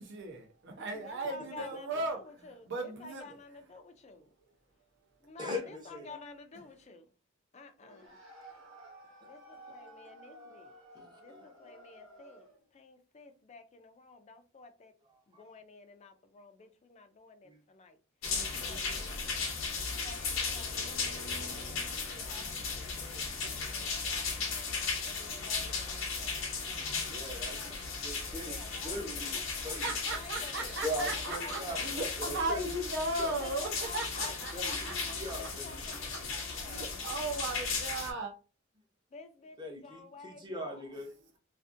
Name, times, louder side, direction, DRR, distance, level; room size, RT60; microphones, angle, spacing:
voice 1, 0.0-2.2 2.7-3.4 29.6-34.9 35.8-36.2 36.6-38.3, right 2 dB, 60° right, 0.7 m, -37 dB
voice 2, 1.0-4.3 5.2-7.1 7.5-8.1 9.3-10.7 11.2-12.5 12.7-14.9 15.4-18.0 18.5-19.1 20.0-24.8 25.0-26.3 26.7-27.3 27.6-27.8 28.4-29.2 30.1-30.8 31.1-32.2 33.4-37.0 39.1-40.7, left 3 dB, 35° left, 0.4 m, -51 dB
voice 3, 5.4-6.2 8.1-8.2 10.9-11.5 15.0-15.5 17.4-17.6 19.8-19.9 27.1-29.4 29.6-29.9 30.8-31.9 32.2-32.7 33.2-33.4 34.5-35.8 39.6-41.4, equal, 20° right, 0.7 m, -41 dB
sound 1, 7.8-12.7, right 1 dB, 80° right, 1.1 m, -53 dB
sound 2, 18.2-38.1, left 4 dB, 80° left, 0.7 m, -36 dB
2.5 x 2.5 x 2.5 m
head